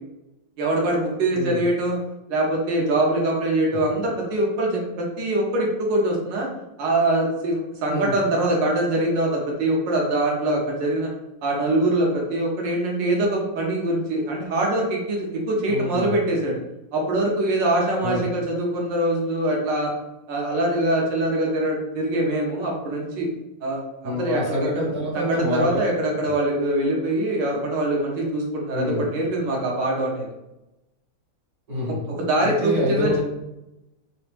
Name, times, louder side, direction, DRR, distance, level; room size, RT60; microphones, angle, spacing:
voice 1, 0.6-2.0 2.3-6.5 6.8-11.1 11.4-16.6 16.9-19.9 20.3-23.3 23.6-24.4 24.7-24.9 25.1-30.3 32.1-33.2, right 1 dB, 75° right, -1 dB, 1.6 m, -23 dB
voice 2, 15.7-16.2 18.0-18.2 24.0-25.7 28.7-29.1 31.7-32.0 32.4-33.2, left 1 dB, 55° right, -8 dB, 1.5 m, -26 dB
4.0 x 3.0 x 3.3 m, 0.93 s
omnidirectional pair, 2.0 m